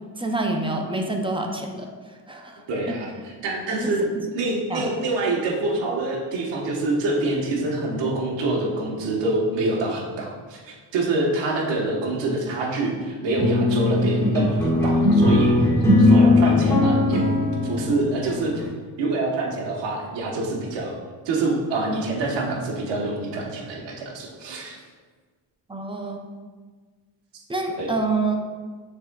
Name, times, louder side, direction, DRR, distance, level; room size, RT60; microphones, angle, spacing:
voice 1, 0.2-1.9 2.3-2.6 2.9-3.0 3.7-4.3 4.7-4.9 25.7-26.2 27.5-28.3, right 2 dB, 15° right, 2 dB, 0.4 m, -27 dB
voice 2, 2.7-15.6 16.0-18.6 19.0-21.0 21.2-24.8 27.8-27.9, right 2 dB, 75° right, -1 dB, 1.1 m, -26 dB
sound 1, 13.2-18.6, left 2 dB, 5° left, 1.4 m, -19 dB
6.5 x 3.5 x 2.2 m, 1.5 s
cardioid pair, 105°, 44 cm